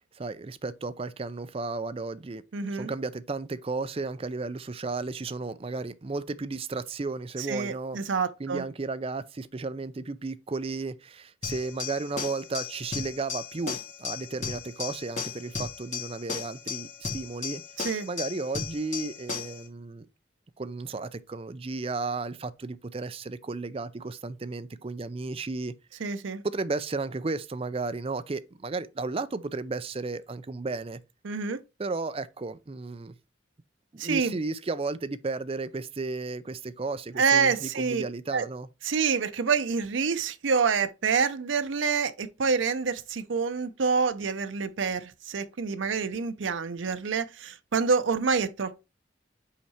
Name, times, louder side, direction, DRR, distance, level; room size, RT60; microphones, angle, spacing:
voice 1, 0.1-2.4 2.7-8.0 8.4-17.6 18.1-20.1 20.6-26.1 26.4-31.0 31.8-33.1 33.9-38.7, right 3 dB, 30° right, 0.5 m, -34 dB
voice 2, 2.5-2.9 7.5-8.6 17.8-18.1 26.0-26.4 31.2-31.6 34.0-34.4 37.2-38.0 38.3-38.5 38.8-48.8, right 5 dB, 85° right, 0.6 m, -27 dB
sound 1, 11.4-19.6, left 6 dB, 40° left, 2.3 m, -35 dB
5.7 x 4.7 x 4.2 m
head